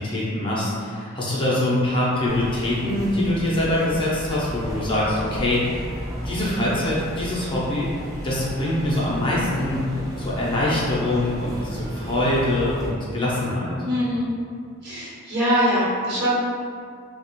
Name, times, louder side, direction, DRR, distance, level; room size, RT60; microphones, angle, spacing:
voice 1, 0.0-5.9 6.2-7.9 8.2-13.8, left 1 dB, 25° left, -7 dB, 0.6 m, -24 dB
sound 1, 2.2-12.9, equal, 20° right, 0.5 m, -34 dB
voice 2, 13.8-14.3 14.8-16.3, equal, 55° right, -9 dB, 1.0 m, -22 dB
2.9 x 2.1 x 2.9 m, 2.3 s
head